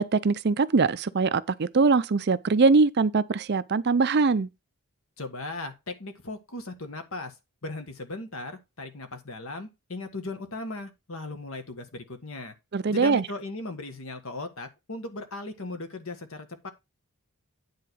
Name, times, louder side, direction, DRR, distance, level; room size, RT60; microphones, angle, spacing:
voice 1, 0.0-4.5 12.7-13.2, right 4 dB, 50° right, 0.5 m, -22 dB
voice 2, 5.2-7.3 7.6-12.5 12.9-16.7, left 2 dB, 70° left, 1.6 m, -37 dB
9.7 x 3.7 x 6.3 m
head